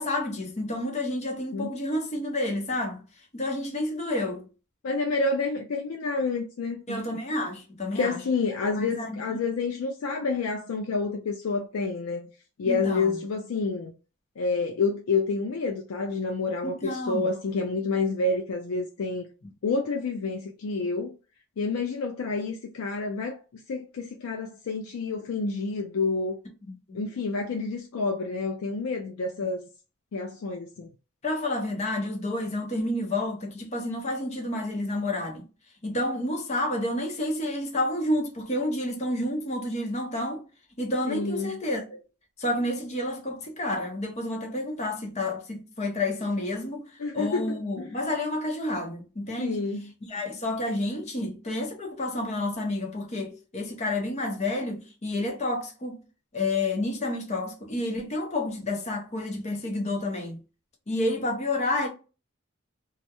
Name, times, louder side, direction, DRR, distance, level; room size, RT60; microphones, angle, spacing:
voice 1, 0.0-3.0 3.3-4.5 6.9-8.2 8.8-9.4 12.7-13.2 16.6-17.3 26.6-27.0 31.2-35.4 35.8-40.4 40.8-42.0 42.4-46.8 47.1-49.6 50.1-56.0 56.3-60.4 60.9-61.9, left 1 dB, 30° left, 0.6 m, -30 dB
voice 2, 4.8-7.0 7.9-12.3 12.6-13.9 14.4-19.3 19.6-21.1 21.6-23.4 23.7-26.4 26.9-29.7 30.1-30.9 41.1-41.5 47.0-48.1 49.4-49.9, left 3 dB, 90° left, 0.4 m, -29 dB
2.3 x 2.0 x 2.8 m
head